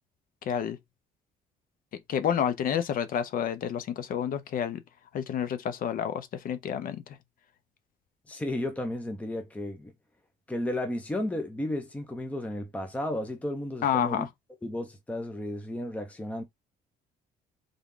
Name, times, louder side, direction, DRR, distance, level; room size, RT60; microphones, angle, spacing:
voice 1, 0.5-0.8 2.1-4.8 5.1-7.2 13.8-14.3, left 9 dB, 55° left, 0.7 m, -29 dB
voice 2, 8.3-9.9 10.5-14.3 14.6-16.4, left 1 dB, 10° left, 0.7 m, -33 dB
3.7 x 3.5 x 3.8 m
cardioid pair, 110°, 17 cm